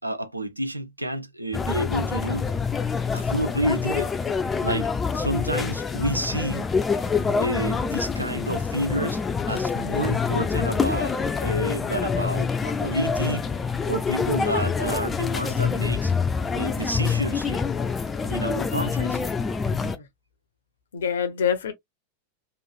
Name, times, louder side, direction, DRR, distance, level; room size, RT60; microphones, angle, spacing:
voice 1, 0.0-2.5 3.1-4.1 4.6-6.7 7.4-13.5 13.9-16.1 16.5-17.7 18.3-19.2, right 1 dB, 85° right, 0.5 m, -29 dB
sound 1, 1.5-20.0, left 5 dB, 15° left, 0.4 m, -26 dB
voice 2, 19.7-20.1 20.9-21.7, left 8 dB, 65° left, 0.7 m, -26 dB
3.0 x 2.5 x 2.4 m
figure-of-eight pair, 90°, 0 cm